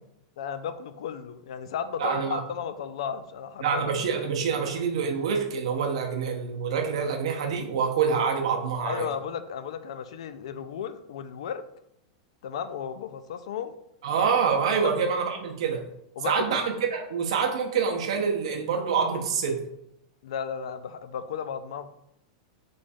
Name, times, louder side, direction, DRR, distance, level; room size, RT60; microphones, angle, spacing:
voice 1, 0.4-3.8 8.8-11.6 12.4-13.7 16.2-16.6 20.2-21.9, left 7 dB, 70° left, 12 dB, 0.3 m, -34 dB
voice 2, 2.0-2.4 3.6-9.1 14.0-15.8 16.2-16.6 16.9-19.6, right 6 dB, 70° right, 3 dB, 0.6 m, -26 dB
4.1 x 3.1 x 2.3 m, 0.79 s
supercardioid pair, 175°, 3 cm